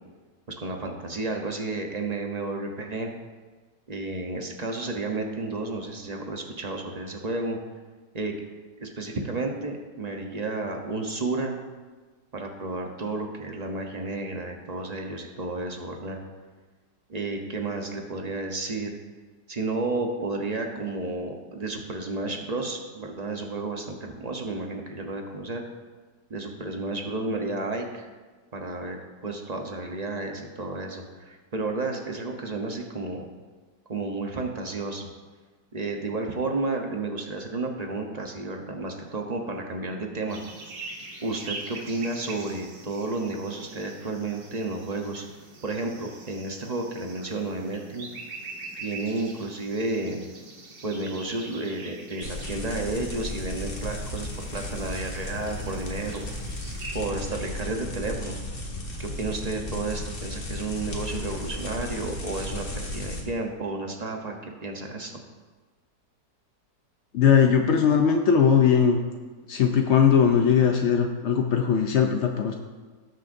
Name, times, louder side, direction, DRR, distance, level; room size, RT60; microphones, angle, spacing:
voice 1, 0.6-3.1 3.9-7.6 8.1-8.3 8.8-11.6 12.3-16.2 17.1-18.9 19.5-25.6 26.3-28.1 28.5-33.2 33.9-35.1 35.7-40.4 41.2-45.2 45.6-48.1 48.8-50.3 50.8-56.3 56.9-58.3 59.0-65.2, right 2 dB, 35° right, 2 dB, 0.7 m, -32 dB
sound 1, 40.3-57.0, right 3 dB, 90° right, 2.0 m, -44 dB
sound 2, 52.2-63.2, left 1 dB, 35° left, 1.5 m, -35 dB
voice 2, 67.1-69.0 69.5-72.5, left 7 dB, 70° left, 3 dB, 0.6 m, -20 dB
18.5 x 6.3 x 2.6 m, 1.4 s
omnidirectional pair, 1.9 m